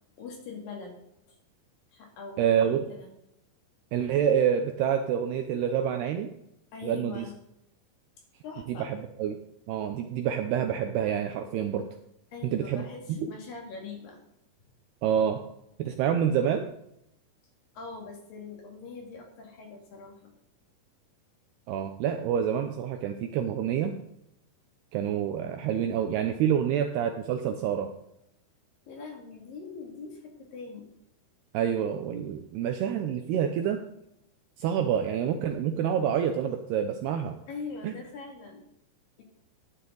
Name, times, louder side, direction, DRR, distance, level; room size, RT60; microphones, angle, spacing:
voice 1, 0.2-1.0 1.3-1.4 1.9-2.5 2.9-3.1 6.7-7.3 8.4-8.9 12.3-14.2 17.8-20.3 28.9-30.9 37.5-38.6 39.2-39.3, left 4 dB, 55° left, 1 dB, 3.5 m, -42 dB
voice 2, 2.4-2.9 3.9-6.3 6.8-7.3 8.8-9.4 9.7-11.9 12.4-12.8 13.1-13.2 15.0-15.4 15.8-16.6 21.7-24.0 24.9-27.9 31.5-33.8 34.6-37.4 37.8-37.9, right 9 dB, 80° right, 6 dB, 2.4 m, -27 dB
15.0 x 9.9 x 3.9 m, 0.79 s
omnidirectional pair, 5.4 m